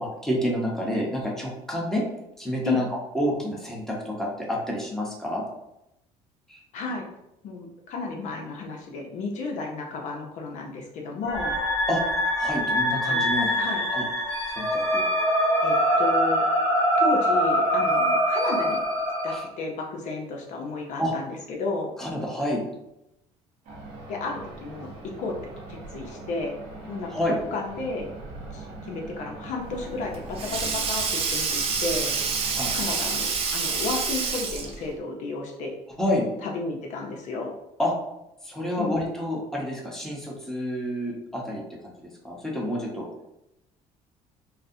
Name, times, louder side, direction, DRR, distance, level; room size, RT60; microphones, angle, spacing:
voice 1, 0.0-2.1 2.4-2.9 3.1-5.4 6.5-6.6 11.9-12.0 12.4-13.5 13.9-14.0 14.5-15.1 19.3-19.5 21.0-21.1 22.0-22.6 27.1-27.3 32.6-32.7 36.0-36.3 37.8-37.9 38.4-41.9 42.2-43.1, equal, 5° left, -3 dB, 0.9 m, -28 dB
voice 2, 6.7-7.1 7.4-11.6 13.1-13.2 13.6-13.9 15.6-16.6 17.0-18.8 19.2-21.9 24.1-25.4 25.7-26.5 26.8-27.1 27.5-28.1 28.5-32.1 32.7-35.7 36.4-37.5 38.8-39.0, left 3 dB, 65° left, 1 dB, 0.6 m, -32 dB
sound 1, 11.3-19.4, equal, 25° left, 1.4 m, -23 dB
sound 2, 23.6-33.3, right 2 dB, 90° right, 1.0 m, -42 dB
Sink (filling or washing), 29.7-34.9, right 5 dB, 45° right, 0.6 m, -27 dB
3.9 x 2.0 x 2.6 m, 0.85 s
cardioid pair, 110°, 13 cm